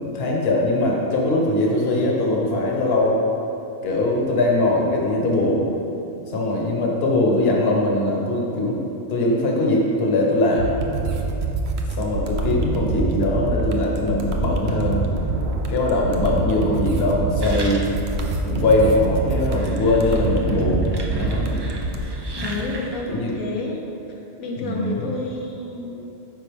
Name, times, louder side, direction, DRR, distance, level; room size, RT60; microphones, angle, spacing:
voice 1, 0.0-3.2 3.8-5.7 6.3-8.8 9.1-10.8 12.0-15.1 15.7-17.8 18.4-21.7 23.1-23.3 24.6-25.1, left 2 dB, 50° left, -2 dB, 1.2 m, -21 dB
sound 1, 10.6-22.0, right 3 dB, 60° right, 0.9 m, -25 dB
sound 2, 17.4-18.2 18.6-18.7 19.3-23.1, right 1 dB, 40° right, 0.3 m, -34 dB
voice 2, 22.3-23.8 24.1-26.1, left 3 dB, 85° left, -2 dB, 1.4 m, -30 dB
9.4 x 5.3 x 3.5 m, 2.9 s
omnidirectional pair, 1.4 m